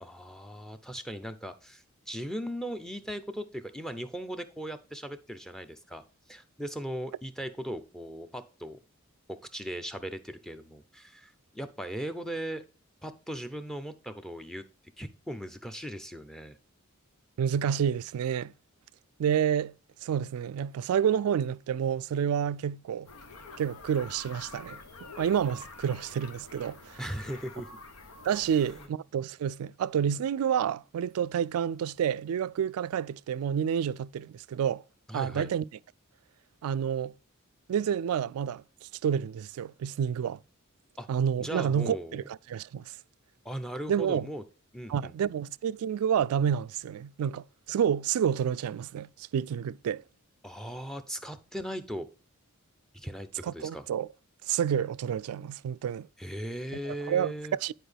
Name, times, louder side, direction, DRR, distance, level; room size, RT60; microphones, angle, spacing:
voice 1, 0.0-6.0 6.3-8.8 9.3-12.6 13.0-14.6 15.0-16.6 27.0-27.7 28.4-28.9 35.1-35.5 41.0-41.1 41.4-42.2 43.4-44.4 44.7-45.1 50.4-52.1 52.9-53.8 56.2-57.6, equal, ahead, 0.6 m, -38 dB
voice 2, 17.4-18.5 19.2-19.7 20.0-23.1 23.6-24.8 25.2-27.0 28.3-34.8 35.1-35.7 36.6-37.1 37.7-38.6 39.0-40.4 41.1-42.9 43.9-44.3 44.9-50.0 53.4-54.1 54.5-56.1 56.9-57.7, right 8 dB, 80° right, 0.3 m, -29 dB
sound 1, 23.1-28.9, left 3 dB, 90° left, 1.0 m, -47 dB
10.0 x 4.7 x 3.4 m
head